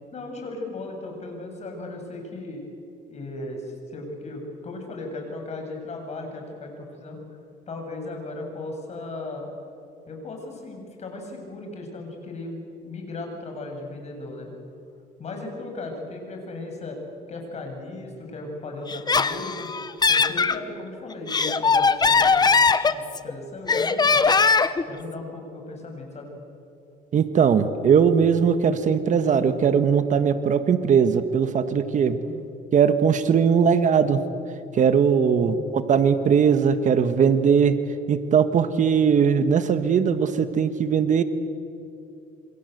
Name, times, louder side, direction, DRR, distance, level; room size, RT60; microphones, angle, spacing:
voice 1, 0.1-2.6 3.1-7.2 7.7-9.5 10.1-14.5 15.2-17.0 17.3-19.7 20.1-22.5 22.8-24.3 24.9-26.3 32.1-32.4 35.4-35.7, left 2 dB, 40° left, 3 dB, 7.6 m, -36 dB
Laughter, 18.9-20.6 21.1-23.3 23.7-24.8, left 4 dB, 25° left, 1.1 m, -20 dB
voice 2, 27.1-32.2 32.7-34.2 34.7-37.7 38.1-41.2, right 7 dB, 50° right, 10 dB, 1.5 m, -20 dB
28.0 x 26.0 x 8.1 m, 2.6 s
cardioid pair, 110°, 17 cm